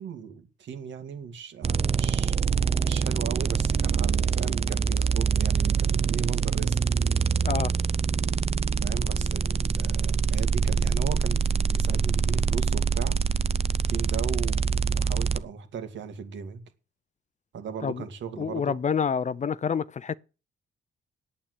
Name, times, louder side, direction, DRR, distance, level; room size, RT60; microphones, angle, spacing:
voice 1, 0.0-2.4 2.8-6.8 8.8-13.2 13.9-16.6 17.5-18.8, right 7 dB, 70° right, 2.5 m, -37 dB
sound 1, 1.6-15.4, right 6 dB, 30° right, 0.7 m, -25 dB
voice 2, 18.4-20.2, left 6 dB, 35° left, 0.6 m, -27 dB
8.8 x 8.7 x 8.4 m
cardioid pair, 90°, 20 cm